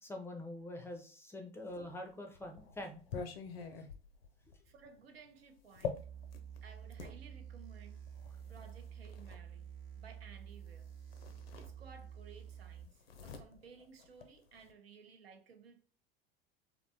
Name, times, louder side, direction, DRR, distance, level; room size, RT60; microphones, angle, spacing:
voice 1, 0.0-3.0 4.5-4.6, left 1 dB, 10° left, 0.5 m, -45 dB
sound 1, 1.8-7.2 8.1-9.4 10.6-10.8 11.1-12.2 12.5-14.7, left 6 dB, 80° left, 0.5 m, -46 dB
voice 2, 4.6-6.1 6.6-8.0 8.5-9.7 10.0-10.9 11.6-15.9, right 5 dB, 85° right, 0.5 m, -57 dB
sound 2, 6.0-12.8, right 8 dB, 60° right, 0.9 m, -50 dB
2.6 x 2.1 x 2.6 m
hypercardioid pair, 80°, 30 cm